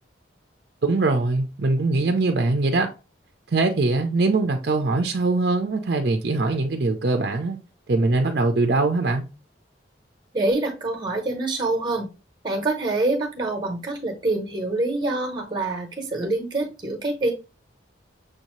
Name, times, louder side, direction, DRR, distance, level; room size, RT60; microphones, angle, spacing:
voice 1, 0.8-2.9 3.5-7.6 7.9-9.3, right 3 dB, 55° right, 0.5 m, -22 dB
voice 2, 10.3-12.1 12.4-17.3, right 2 dB, 25° right, 0.9 m, -25 dB
6.3 x 2.7 x 3.0 m
head